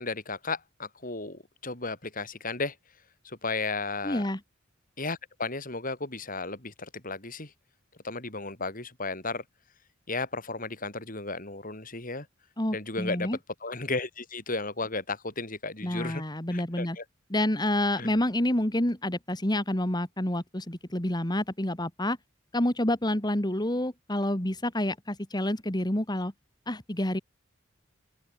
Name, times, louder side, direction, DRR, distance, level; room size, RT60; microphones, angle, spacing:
voice 1, 0.0-2.7 3.2-4.2 5.0-7.5 8.0-9.4 10.1-12.3 12.7-13.3 13.6-16.2 16.5-17.0 18.0-18.1, left 3 dB, 45° left, 6.2 m, -34 dB
voice 2, 4.0-4.4 12.6-13.4 15.8-17.0 17.3-22.2 22.5-26.3 26.7-27.2, left 1 dB, 20° left, 2.3 m, -28 dB
open air
head